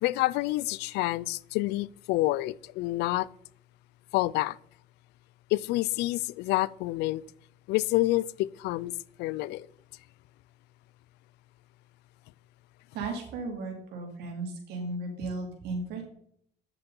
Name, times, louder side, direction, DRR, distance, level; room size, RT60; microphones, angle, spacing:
voice 1, 0.0-3.3 4.1-4.6 5.5-7.2 7.7-8.9 9.2-9.7, left 18 dB, 90° left, 0.4 m, -28 dB
voice 2, 12.9-16.0, right 3 dB, 80° right, 3.7 m, -35 dB
10.0 x 7.8 x 4.5 m
cardioid pair, 110°, 17 cm